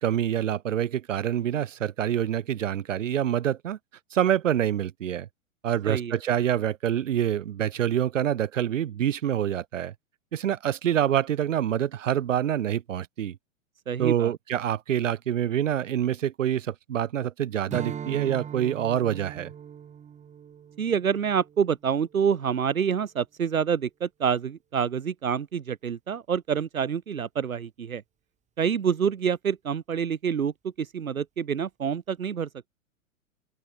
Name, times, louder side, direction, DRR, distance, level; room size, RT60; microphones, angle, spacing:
voice 1, 0.0-3.8 4.1-5.3 5.6-9.9 10.3-13.4 14.0-19.5, right 10 dB, 65° right, 1.8 m, -26 dB
voice 2, 5.9-6.2 13.9-14.3 20.8-28.0 28.6-32.5, right 7 dB, 80° right, 1.4 m, -27 dB
Strum, 17.7-22.4, right 8 dB, 15° right, 3.8 m, -40 dB
open air
hypercardioid pair, 115°, 41 cm